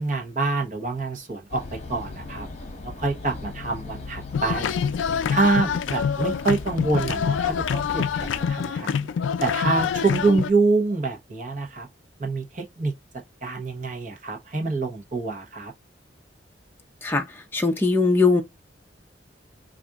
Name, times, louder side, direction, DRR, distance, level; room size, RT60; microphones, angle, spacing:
voice 1, 0.0-1.6 1.9-2.5 3.0-4.7 5.3-9.1 9.4-11.9 12.2-12.9 13.4-15.7, right 3 dB, 45° right, 1.0 m, -26 dB
sound 1, 1.5-8.5, left 3 dB, 35° left, 0.9 m, -38 dB
sound 2, 4.3-10.5, left 7 dB, 90° left, 0.3 m, -26 dB
voice 2, 17.5-18.4, left 3 dB, 10° left, 0.5 m, -20 dB
4.0 x 2.5 x 2.3 m
head